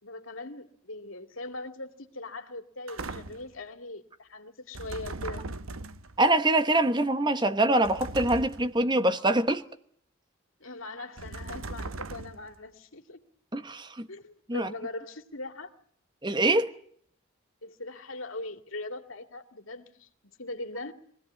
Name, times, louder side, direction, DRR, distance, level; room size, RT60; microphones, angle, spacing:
voice 1, 0.0-5.5 10.6-13.2 14.1-15.7 17.6-20.1 20.4-20.9, left 2 dB, 80° left, 2.3 m, -40 dB
sound 1, 2.9-3.6 4.7-6.2 7.8-8.8 11.2-12.6, right 3 dB, 90° right, 1.0 m, -39 dB
voice 2, 6.2-9.6 13.5-14.1 14.5-14.7 16.2-16.7, right 2 dB, 20° right, 1.0 m, -24 dB
24.0 x 17.0 x 9.5 m
head